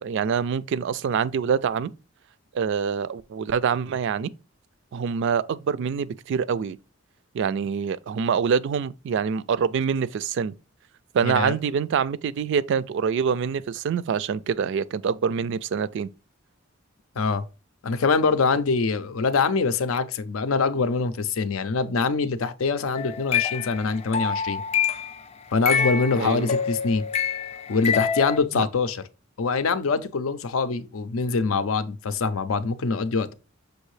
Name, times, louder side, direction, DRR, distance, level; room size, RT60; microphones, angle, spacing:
voice 1, 0.0-1.9 2.5-4.3 4.9-6.8 7.3-10.5 11.1-16.1 26.2-26.5 28.5-28.6, right 6 dB, 60° right, 0.3 m, -25 dB
voice 2, 11.2-11.6 17.2-17.4 17.8-24.6 25.5-27.0 27.7-29.0 29.4-33.3, left 4 dB, 85° left, 0.5 m, -24 dB
sound 1, 22.9-25.1 25.7-28.4, left 7 dB, 30° left, 0.4 m, -26 dB
6.4 x 2.7 x 3.1 m
head